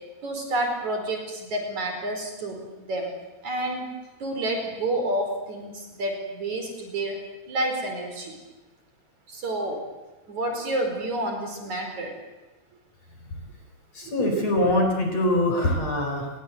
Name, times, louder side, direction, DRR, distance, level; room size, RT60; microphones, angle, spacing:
voice 1, 0.2-3.1 3.4-3.9 4.2-7.1 7.5-8.3 9.3-9.8 10.3-12.1 14.0-14.6, right 1 dB, 45° right, 3 dB, 6.0 m, -29 dB
voice 2, 14.0-16.3, left 1 dB, 40° left, 3 dB, 5.3 m, -23 dB
29.5 x 22.5 x 8.1 m, 1.1 s
omnidirectional pair, 4.9 m